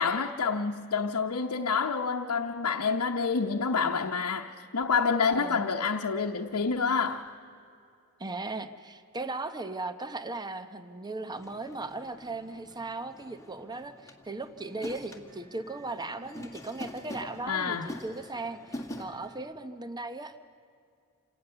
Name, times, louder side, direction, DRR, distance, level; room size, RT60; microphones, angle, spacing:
voice 1, 0.0-4.5 4.7-7.2 17.5-17.9, left 5 dB, 80° left, 0.9 m, -28 dB
voice 2, 5.3-5.7 8.2-20.4, right 2 dB, 20° right, 0.8 m, -37 dB
sound 1, 11.3-19.4, left 1 dB, 15° left, 1.8 m, -45 dB
27.5 x 18.0 x 6.8 m
head